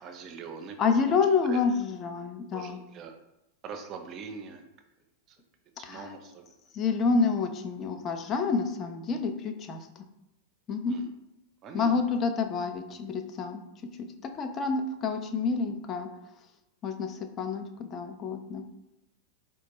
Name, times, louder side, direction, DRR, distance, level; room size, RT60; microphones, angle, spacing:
voice 1, 0.0-1.6 2.5-3.1 3.6-4.7 5.3-5.4 5.8-6.5 10.9-11.1 11.6-12.2, right 5 dB, 35° right, 5 dB, 0.5 m, -43 dB
voice 2, 0.8-2.8 5.8-6.1 6.7-9.8 10.7-11.0 11.7-13.6 14.2-16.1 16.8-18.6, left 5 dB, 30° left, 6 dB, 0.3 m, -28 dB
4.2 x 2.2 x 2.9 m, 0.90 s
figure-of-eight pair, 90°, 0 cm